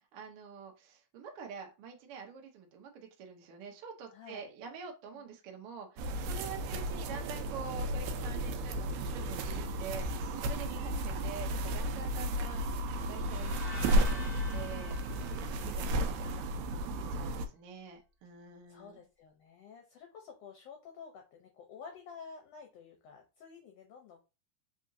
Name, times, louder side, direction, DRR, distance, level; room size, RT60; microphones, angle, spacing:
voice 1, 0.1-12.6 13.1-15.0 15.5-16.5 16.9-19.0, right 5 dB, 65° right, 2 dB, 1.4 m, -46 dB
voice 2, 4.1-4.5 5.1-5.2 10.6-11.1 15.3-16.0 18.7-24.2, left 6 dB, 75° left, 2 dB, 1.6 m, -51 dB
sound 1, 6.0-17.5, right 1 dB, 85° right, 2.0 m, -33 dB
sound 2, 13.2-16.4, left 1 dB, 50° left, 0.6 m, -49 dB
4.3 x 3.7 x 2.6 m, 0.29 s
omnidirectional pair, 3.4 m